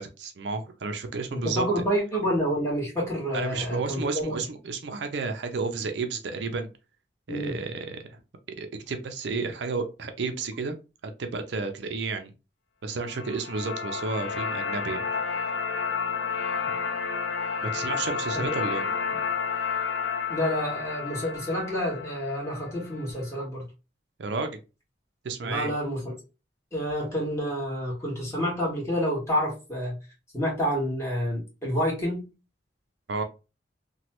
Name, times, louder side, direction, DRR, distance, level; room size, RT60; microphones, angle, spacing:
voice 1, 0.0-1.6 3.3-6.7 7.3-8.2 8.5-10.7 11.0-12.3 12.8-15.1 17.6-19.0 24.2-24.6 25.2-25.7 33.1-33.2, right 4 dB, 70° right, 0.5 m, -32 dB
voice 2, 1.3-4.4 7.3-7.5 18.3-18.4 20.3-23.6 25.4-26.2 26.7-29.9 30.3-32.2, equal, 15° left, 1.4 m, -28 dB
sound 1, 13.0-23.1, left 5 dB, 75° left, 0.6 m, -31 dB
3.0 x 2.2 x 2.9 m
head